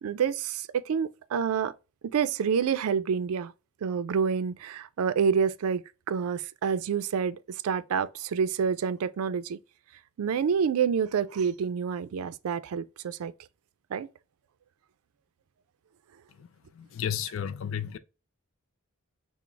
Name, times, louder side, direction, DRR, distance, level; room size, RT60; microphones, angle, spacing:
voice 1, 0.0-1.7 2.1-3.5 3.8-9.6 10.2-13.3 13.9-14.1, right 6 dB, 90° right, 0.4 m, -28 dB
voice 2, 16.7-18.0, left 9 dB, 65° left, 0.3 m, -33 dB
6.0 x 2.0 x 3.2 m
head